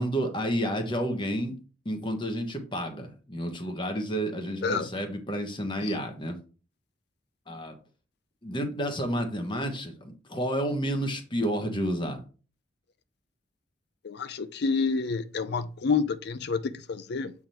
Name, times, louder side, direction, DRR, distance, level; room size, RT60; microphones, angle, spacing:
voice 1, 0.0-1.6 1.8-6.4 7.5-7.8 8.4-12.2, equal, 25° left, 1.2 m, -30 dB
voice 2, 14.0-17.3, left 5 dB, 60° left, 0.4 m, -28 dB
7.8 x 3.6 x 4.4 m
head